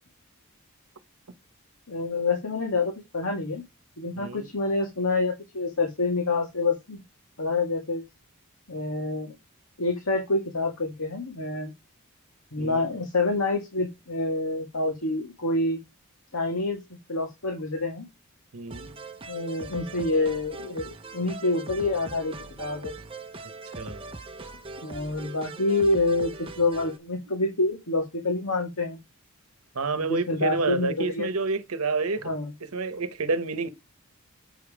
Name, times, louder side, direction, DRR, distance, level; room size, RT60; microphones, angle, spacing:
voice 1, 1.9-3.6 4.0-7.0 7.4-8.0 8.7-9.3 9.8-11.7 12.5-15.8 16.3-16.8 17.1-18.1 19.3-22.9 24.8-29.0 30.0-31.3 32.2-32.5, left 2 dB, 75° left, 2.0 m, -27 dB
voice 2, 12.6-12.9 18.5-19.0 23.7-24.0 29.7-32.3 32.7-33.7, right 3 dB, 80° right, 1.0 m, -29 dB
sound 1, 18.7-27.0, right 3 dB, 25° right, 0.7 m, -41 dB
7.9 x 5.2 x 4.9 m
head